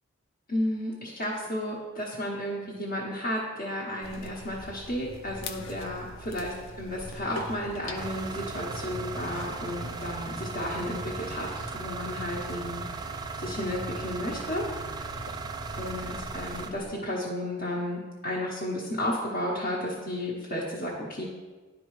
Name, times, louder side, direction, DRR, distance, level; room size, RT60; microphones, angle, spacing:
voice 1, 0.5-12.9 13.4-14.6 15.7-21.2, left 1 dB, 50° left, -6 dB, 1.0 m, -33 dB
sound 1, 4.0-16.9, left 2 dB, 70° left, 0.6 m, -43 dB
sound 2, 7.9-16.7, right 4 dB, 20° right, 0.3 m, -37 dB
11.0 x 4.6 x 3.2 m, 1.4 s
head